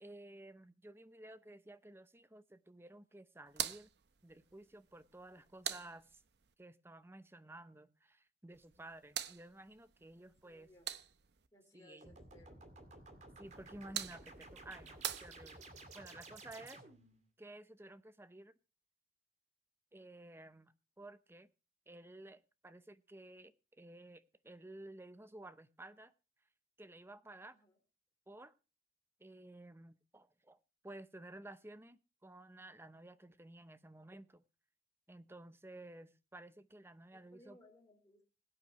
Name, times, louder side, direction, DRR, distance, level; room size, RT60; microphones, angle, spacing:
voice 1, 0.0-3.9 4.2-6.2 6.6-10.7 11.7-12.2 13.4-15.6 15.9-16.8 17.4-18.5 19.9-21.5 21.9-26.1 26.8-27.6 28.3-28.5 29.2-30.6 30.8-34.4 35.1-37.6, right 1 dB, 15° right, 14 dB, 0.7 m, -54 dB
sound 1, 3.5-6.5 8.5-11.5 13.5-15.9, right 11 dB, 65° right, 0.8 m, -46 dB
voice 2, 10.1-10.9 11.5-12.7 27.5-27.8 37.1-38.2, left 1 dB, 20° left, 1 dB, 4.1 m, -64 dB
sound 2, 12.0-17.2, right 2 dB, 40° right, 2.3 m, -55 dB
21.5 x 8.8 x 3.1 m, 0.32 s
head